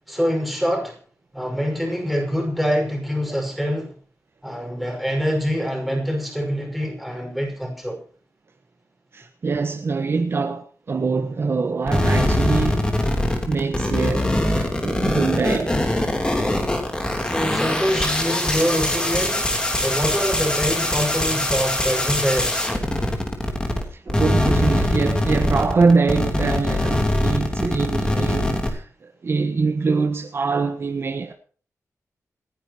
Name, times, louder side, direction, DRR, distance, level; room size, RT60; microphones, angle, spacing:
voice 1, 0.1-1.0 1.3-3.9 4.4-8.0 17.2-19.5 19.8-22.7, equal, ahead, 5.5 m, -25 dB
voice 2, 9.1-12.9 13.5-15.8 23.9-31.3, right 4 dB, 45° right, 1.3 m, -23 dB
sound 1, 11.9-23.8 24.1-28.7, left 1 dB, 15° left, 3.2 m, -22 dB
27.5 x 10.5 x 3.0 m
wide cardioid pair, 160°, 6 cm